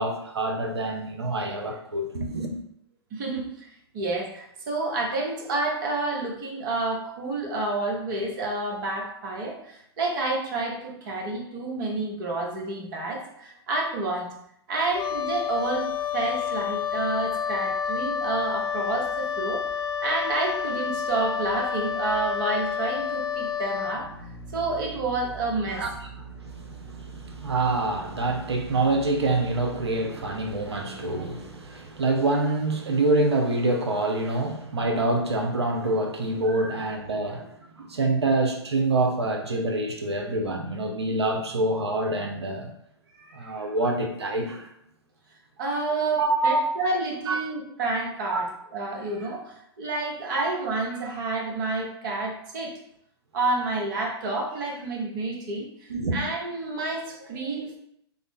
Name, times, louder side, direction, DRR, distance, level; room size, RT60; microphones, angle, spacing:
voice 1, 0.0-2.5 25.7-25.9 26.4-42.7 43.3-44.7 46.2-46.8 47.3-47.4 48.3-48.4 50.4-50.5 55.9-56.2, right 2 dB, 80° right, 0.6 m, -26 dB
voice 2, 3.1-14.3 14.7-19.6 20.0-24.1 24.5-25.9 36.5-36.8 43.1-43.7 45.6-48.5 48.7-52.7 53.3-57.8, right 2 dB, 50° right, 0.9 m, -29 dB
Wind instrument woodwind instrument, 14.9-24.0, left 7 dB, 55° left, 0.4 m, -29 dB
Drill, 23.8-32.4, right 4 dB, 10° right, 1.1 m, -43 dB
3.4 x 2.0 x 3.5 m
figure-of-eight pair, 110°, 14 cm